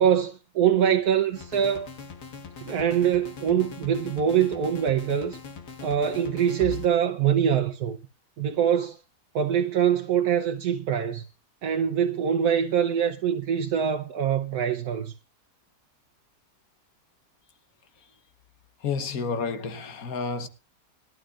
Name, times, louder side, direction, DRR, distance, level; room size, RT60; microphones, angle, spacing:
voice 1, 0.0-1.9 2.6-5.4 5.8-8.0 8.4-9.0 9.3-11.2 11.6-15.1, right 8 dB, 75° right, 1.3 m, -24 dB
sound 1, 1.3-6.9, left 6 dB, 90° left, 2.0 m, -41 dB
voice 2, 18.8-20.5, left 5 dB, 65° left, 1.6 m, -30 dB
20.5 x 12.5 x 2.5 m
omnidirectional pair, 1.7 m